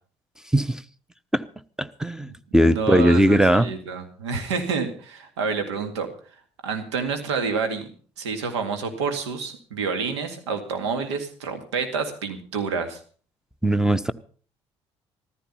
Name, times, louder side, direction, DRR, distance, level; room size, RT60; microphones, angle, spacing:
voice 1, 1.8-3.7 13.6-14.1, equal, 5° right, 1.0 m, -19 dB
voice 2, 2.6-6.1 6.6-7.9 8.2-13.0, right 5 dB, 85° right, 2.1 m, -28 dB
14.5 x 13.5 x 5.6 m
hypercardioid pair, 50°, 14 cm